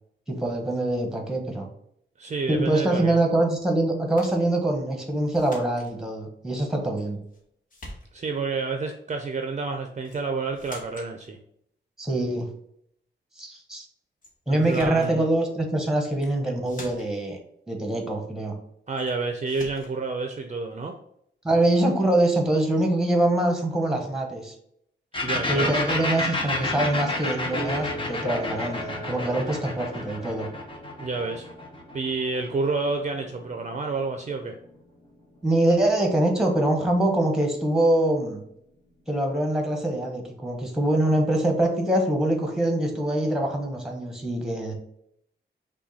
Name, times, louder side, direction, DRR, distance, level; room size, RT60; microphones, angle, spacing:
voice 1, 0.3-1.7 2.5-7.2 12.0-12.5 13.4-13.8 14.5-17.4 17.7-18.5 21.4-24.5 25.5-30.5 35.4-38.4 39.1-44.7, right 1 dB, 5° right, 2 dB, 0.9 m, -24 dB
voice 2, 2.2-3.2 8.1-11.4 14.5-15.3 18.9-20.9 25.2-25.7 31.0-31.5 31.9-34.6, right 3 dB, 40° right, 5 dB, 0.4 m, -29 dB
sound 1, 4.2-4.4 5.3-5.9 7.0-7.4 7.7-8.4 10.0-10.2 10.5-11.1 14.2-14.3 14.6-15.1 16.1-16.3 16.6-17.3 19.0-19.1 19.5-20.0, left 1 dB, 45° left, 1.2 m, -44 dB
sound 2, 25.1-32.7, left 2 dB, 25° left, 0.8 m, -30 dB
sound 3, 25.2-39.0, left 1 dB, 75° left, 0.8 m, -40 dB
5.8 x 2.2 x 4.0 m, 0.71 s
wide cardioid pair, 150°, 19 cm